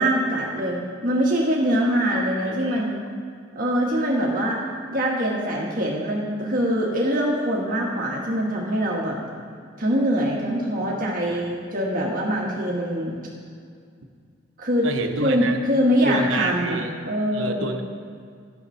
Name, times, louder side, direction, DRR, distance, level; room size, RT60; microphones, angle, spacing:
voice 1, 0.0-3.0 3.5-4.6 4.9-9.2 9.8-13.2 14.6-14.9 15.2-17.7, equal, 45° right, -3 dB, 1.3 m, -23 dB
voice 2, 2.4-2.9 11.3-11.5 14.8-15.6 16.0-16.9 17.3-17.8, right 3 dB, 80° right, 5 dB, 1.0 m, -29 dB
12.0 x 7.0 x 5.4 m, 2.2 s
head